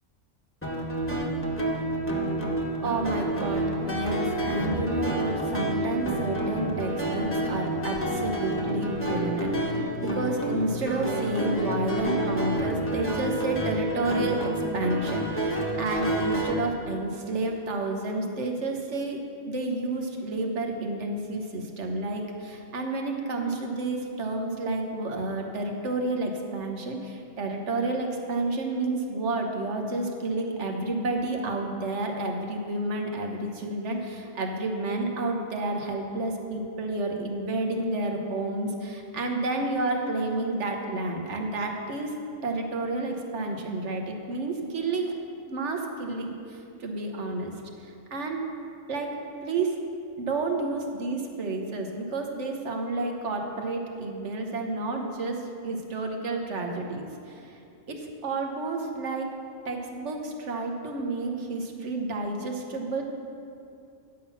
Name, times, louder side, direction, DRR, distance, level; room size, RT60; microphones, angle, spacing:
sound 1, 0.6-16.5, right 1 dB, 10° left, 1.1 m, -29 dB
voice 1, 2.8-19.2 19.5-42.1 42.4-45.1 45.5-47.5 47.8-48.4 48.9-49.1 49.4-49.8 50.2-57.5 57.9-59.3 59.6-63.0, right 2 dB, 60° right, 2 dB, 1.3 m, -30 dB
10.0 x 5.8 x 7.0 m, 2.5 s
omnidirectional pair, 1.4 m